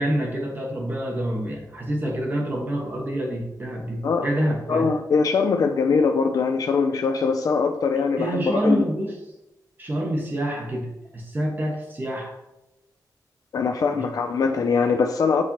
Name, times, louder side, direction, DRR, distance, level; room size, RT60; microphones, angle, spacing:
voice 1, 0.0-4.9 7.9-9.2 9.8-12.3 13.9-14.0, right 1 dB, 25° right, -1 dB, 1.2 m, -27 dB
voice 2, 4.7-8.8 13.5-15.4, left 5 dB, 55° left, 5 dB, 0.4 m, -22 dB
7.6 x 4.4 x 2.9 m, 0.92 s
wide cardioid pair, 165°, 7 cm